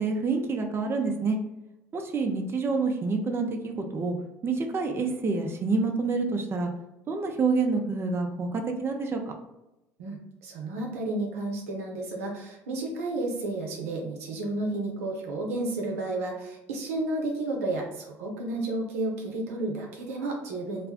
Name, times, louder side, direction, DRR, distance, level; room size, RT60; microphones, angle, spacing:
voice 1, 0.0-1.4 1.9-4.1 4.4-6.7 7.1-9.2, right 4 dB, 35° right, 3 dB, 0.5 m, -27 dB
voice 2, 10.0-20.9, right 2 dB, 90° right, 0 dB, 0.6 m, -32 dB
2.5 x 2.2 x 3.5 m, 0.92 s
hypercardioid pair, 75°, 8 cm